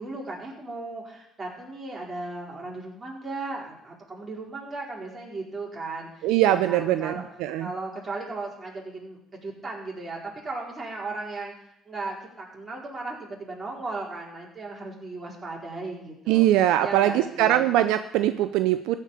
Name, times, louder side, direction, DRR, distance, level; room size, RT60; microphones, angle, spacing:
voice 1, 0.0-7.3 7.6-11.5 11.9-16.5 16.8-17.7, right 3 dB, 30° right, -3 dB, 4.5 m, -36 dB
voice 2, 6.2-7.1 7.4-7.7 16.3-19.0, right 13 dB, 75° right, 11 dB, 0.5 m, -22 dB
14.5 x 5.2 x 8.5 m, 0.76 s
supercardioid pair, 70°, 0 cm